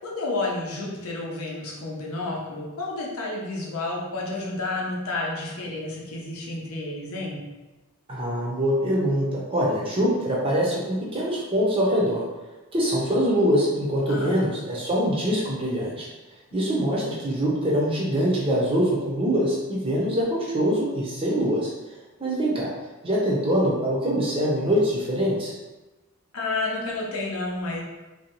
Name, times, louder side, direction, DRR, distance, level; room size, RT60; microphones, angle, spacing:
voice 1, 0.0-7.4 14.1-14.5 26.3-27.8, left 2 dB, 75° left, -3 dB, 0.6 m, -30 dB
voice 2, 8.1-12.2 12.7-16.1 16.5-21.7 22.2-22.7 23.0-25.5, equal, 25° right, -5 dB, 0.5 m, -24 dB
2.6 x 2.2 x 2.9 m, 1.1 s
head